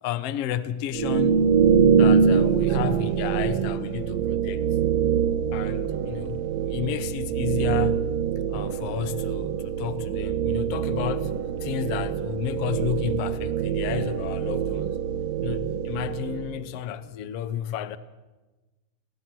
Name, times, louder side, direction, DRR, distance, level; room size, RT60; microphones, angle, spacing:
voice 1, 0.0-1.6 2.0-4.6 5.5-8.1 8.5-11.3 11.6-15.0 15.4-18.0, left 11 dB, 65° left, 1.6 m, -32 dB
sound 1, 0.9-16.7, right 7 dB, 65° right, 2.0 m, -24 dB
29.5 x 20.5 x 6.2 m
omnidirectional pair, 3.9 m